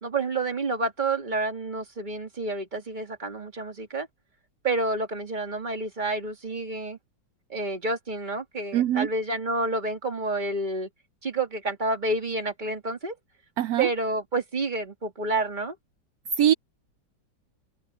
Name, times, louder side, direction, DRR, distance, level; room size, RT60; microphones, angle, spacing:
voice 1, 0.0-4.1 4.6-7.0 7.5-10.9 11.2-13.2 13.8-15.8, right 2 dB, 25° right, 2.2 m, -29 dB
voice 2, 8.7-9.1 13.6-13.9 16.4-16.5, right 11 dB, 70° right, 1.0 m, -22 dB
open air
omnidirectional pair, 2.0 m